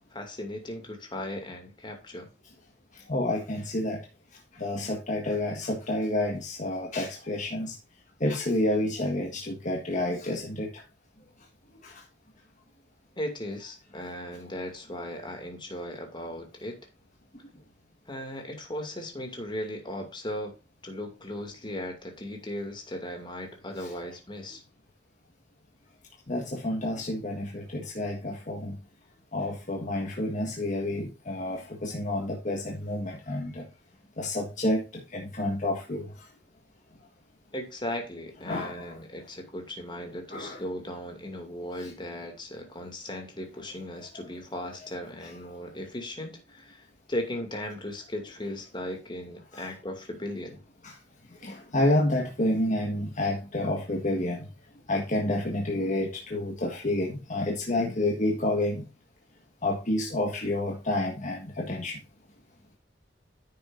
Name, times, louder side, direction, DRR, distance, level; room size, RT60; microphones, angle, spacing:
voice 1, 0.1-2.3 13.2-16.8 18.1-20.6 20.8-24.6 37.5-46.8 47.1-50.6, left 1 dB, 25° left, 2.4 m, -37 dB
voice 2, 3.1-4.0 4.6-7.7 8.2-10.7 26.3-28.7 29.3-33.6 34.2-34.8 35.1-36.0 38.5-38.8 40.3-40.6 49.5-49.7 50.8-50.9 51.4-54.4 54.9-58.8 59.6-61.9, left 1 dB, 45° left, 1.6 m, -29 dB
10.0 x 7.5 x 2.6 m
head